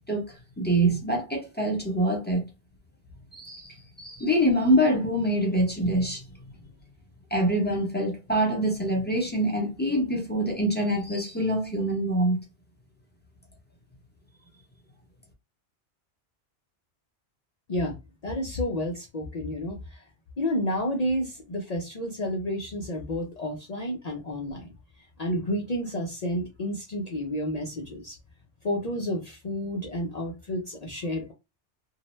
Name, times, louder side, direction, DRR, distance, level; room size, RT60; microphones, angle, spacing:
voice 1, 0.1-2.4 3.3-6.2 7.3-12.4, right 1 dB, 10° left, 0.8 m, -25 dB
voice 2, 18.2-20.0 20.4-24.7 25.2-28.2 28.6-31.3, left 1 dB, 50° left, 0.5 m, -30 dB
2.7 x 2.0 x 3.0 m
omnidirectional pair, 1.2 m